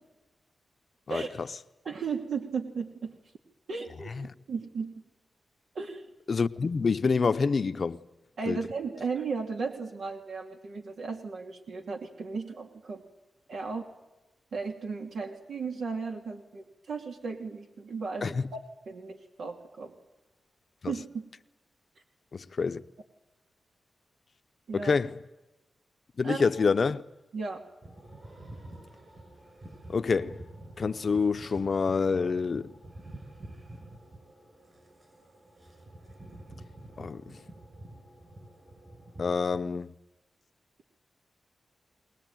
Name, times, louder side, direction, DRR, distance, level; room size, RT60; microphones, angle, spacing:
voice 1, 1.1-1.5 4.1-4.3 6.3-8.0 8.5-8.6 18.2-18.5 20.8-20.9 22.3-22.8 24.7-25.2 26.2-27.0 29.9-30.4 30.8-32.7 37.0-37.4 39.2-39.9, left 5 dB, 50° left, 0.7 m, -27 dB
voice 2, 1.8-3.2 3.7-4.1 4.5-5.0 5.7-6.1 8.4-13.0 13.5-13.8 14.5-18.3 18.9-19.9 20.9-21.3 24.7-24.9 26.2-26.5 27.3-27.7, right 5 dB, 80° right, 2.7 m, -35 dB
sound 1, 27.8-39.6, right 1 dB, 35° right, 6.8 m, -48 dB
22.5 x 19.5 x 9.1 m
wide cardioid pair, 105°, 0 cm